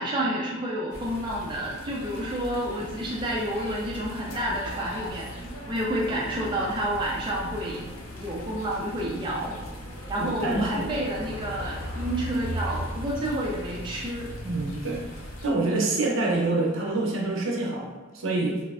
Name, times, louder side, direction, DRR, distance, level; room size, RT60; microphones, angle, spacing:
voice 1, 0.0-7.9 8.2-9.6 10.1-14.3, right 1 dB, 25° right, -4 dB, 0.3 m, -30 dB
sound 1, 0.9-15.5, equal, 80° left, 0.5 m, -38 dB
voice 2, 10.2-10.9 11.2-11.3 14.4-18.6, right 2 dB, 65° right, -2 dB, 0.6 m, -27 dB
3.3 x 2.0 x 2.3 m, 1.3 s
head